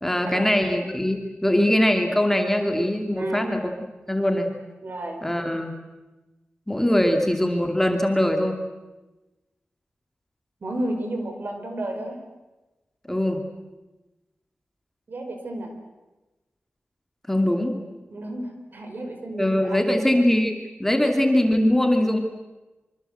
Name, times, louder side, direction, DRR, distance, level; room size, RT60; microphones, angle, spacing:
voice 1, 0.0-3.7 4.1-4.5 5.2-5.7 6.7-8.6 13.1-13.4 17.3-17.8 19.4-22.2, left 1 dB, 10° left, 4 dB, 2.6 m, -22 dB
voice 2, 4.8-5.2 10.6-12.2 15.1-15.7 18.1-20.1, right 1 dB, 55° right, 5 dB, 5.0 m, -32 dB
26.0 x 25.0 x 7.9 m, 1.1 s
wide cardioid pair, 130°, 4 cm